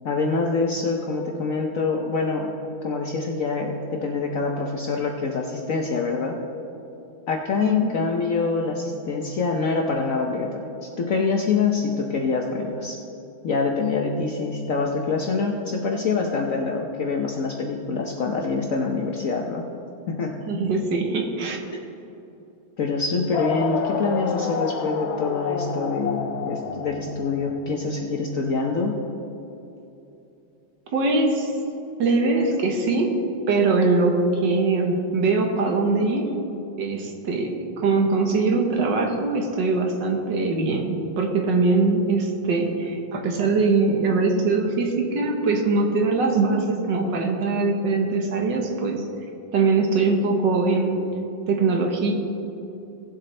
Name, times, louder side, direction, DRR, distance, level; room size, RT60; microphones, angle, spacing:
voice 1, 0.0-2.5 2.8-6.4 7.3-13.0 13.4-19.6 20.1-20.4 22.8-28.9, left 4 dB, 60° left, 1 dB, 0.9 m, -25 dB
voice 2, 20.4-21.6 30.9-31.5 32.0-33.2 33.5-36.3 36.8-37.5 37.8-49.0 49.5-51.0 51.5-52.1, right 3 dB, 65° right, 2 dB, 1.7 m, -22 dB
sound 1, 23.3-27.9, left 6 dB, 85° left, 1.5 m, -29 dB
18.0 x 7.6 x 3.3 m, 2.9 s
omnidirectional pair, 2.1 m